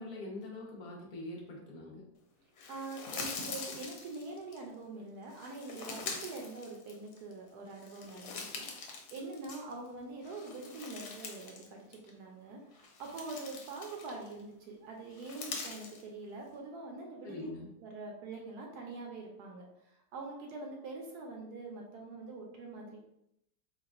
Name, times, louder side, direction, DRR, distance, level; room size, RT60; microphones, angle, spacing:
voice 1, 0.0-2.1 17.2-17.7, left 2 dB, 50° left, -3 dB, 0.5 m, -43 dB
sound 1, 2.6-4.6 5.3-7.3 7.7-9.9 10.2-11.7 11.9-12.1 12.7-14.4 15.1-16.0, left 4 dB, 75° left, 1.2 m, -44 dB
voice 2, 2.7-8.5 8.8-17.5 17.8-23.0, right 3 dB, 75° right, 1 dB, 1.0 m, -44 dB
4.0 x 2.3 x 2.4 m, 0.81 s
omnidirectional pair, 1.9 m